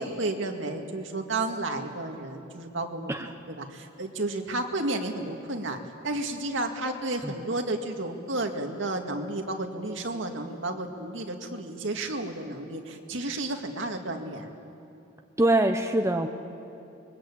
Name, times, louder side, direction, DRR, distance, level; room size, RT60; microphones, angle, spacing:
voice 1, 0.0-3.1 3.6-14.5, right 2 dB, 70° right, 4 dB, 2.2 m, -32 dB
voice 2, 15.4-16.3, right 1 dB, 15° right, 5 dB, 0.8 m, -23 dB
27.5 x 22.5 x 8.6 m, 2.7 s
head